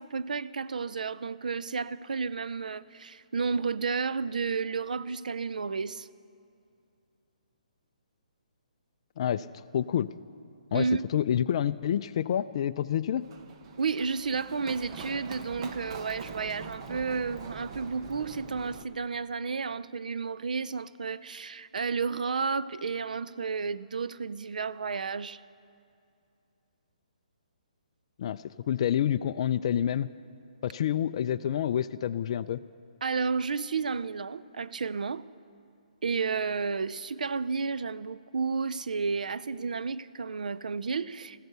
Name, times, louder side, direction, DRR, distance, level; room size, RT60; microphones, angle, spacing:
voice 1, 0.0-6.1 10.7-11.0 13.8-25.4 33.0-35.2 36.0-41.4, right 5 dB, 80° right, 0.4 m, -32 dB
voice 2, 9.7-10.1 10.7-10.8 11.1-13.3 28.2-28.4 28.7-30.1 30.6-32.6, left 10 dB, 45° left, 0.3 m, -28 dB
Run, 13.2-18.8, right 5 dB, 40° right, 1.0 m, -43 dB
15.0 x 14.0 x 6.8 m
hypercardioid pair, 150°, 4 cm